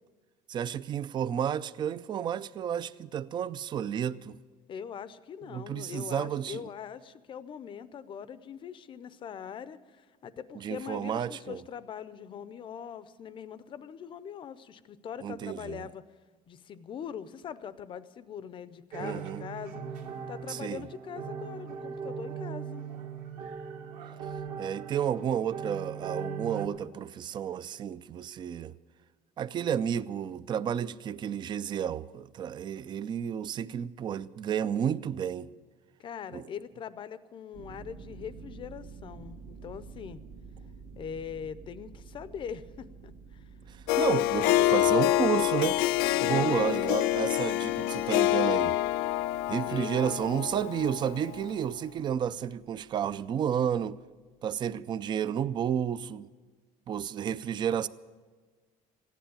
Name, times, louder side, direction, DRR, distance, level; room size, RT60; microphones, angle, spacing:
voice 1, 0.5-4.4 5.5-6.7 10.5-11.6 15.2-15.9 19.0-19.4 20.5-20.9 24.6-28.7 29.4-35.5 36.3-36.4 43.7-45.8 46.2-48.8 49.5-54.0 54.4-56.3 56.9-57.9, right 9 dB, 30° right, 0.4 m, -31 dB
voice 2, 4.7-16.0 16.5-19.8 20.3-22.8 36.0-40.2 41.0-43.5 44.1-45.0 46.0-46.9 49.6-50.3, left 8 dB, 30° left, 0.6 m, -42 dB
sound 1, 18.9-26.7, right 6 dB, 60° right, 1.5 m, -39 dB
sound 2, 37.5-53.3, right 5 dB, 80° right, 1.6 m, -51 dB
Harp, 43.9-51.4, left 15 dB, 80° left, 0.5 m, -26 dB
15.0 x 10.5 x 8.5 m
cardioid pair, 155°, 16 cm